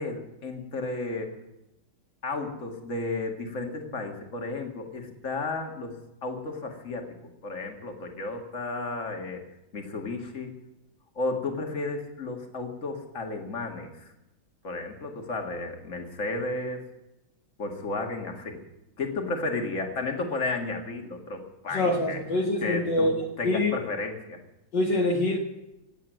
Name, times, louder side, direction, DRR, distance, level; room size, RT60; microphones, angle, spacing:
voice 1, 0.0-1.3 2.2-6.0 6.2-7.2 7.4-9.4 9.7-10.5 11.2-14.1 14.6-16.8 17.6-18.6 19.0-23.1 23.4-24.4, left 3 dB, 40° left, 3 dB, 2.2 m, -33 dB
voice 2, 21.7-23.1 23.4-23.7 24.7-25.4, left 2 dB, 60° left, 0 dB, 2.0 m, -25 dB
17.0 x 8.3 x 9.2 m, 0.92 s
omnidirectional pair, 2.2 m